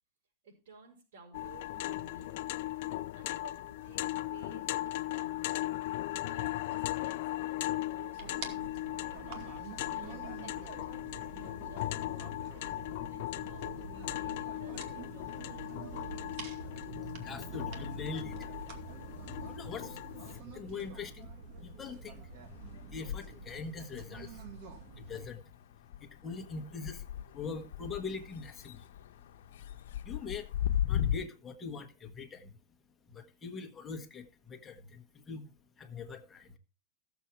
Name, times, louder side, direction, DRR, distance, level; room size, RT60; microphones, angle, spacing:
voice 1, 0.4-5.7 6.0-9.2 9.9-12.6 13.1-16.7, right 3 dB, 75° right, 5.5 m, -56 dB
sound 1, 1.3-20.4, left 16 dB, 50° left, 0.6 m, -38 dB
sound 2, 8.2-25.3, right 4 dB, 45° right, 2.3 m, -46 dB
voice 2, 17.2-18.5 19.3-20.0 20.2-21.3 21.6-22.3 22.9-24.5 24.9-25.5 26.0-27.0 27.3-28.9 30.0-30.5 30.9-32.6 33.1-35.5 35.8-36.6, left 5 dB, 15° left, 1.3 m, -42 dB
sound 3, 18.0-19.1 19.5-31.2, left 10 dB, 75° left, 0.8 m, -39 dB
15.0 x 7.2 x 4.6 m
supercardioid pair, 165°, 0 cm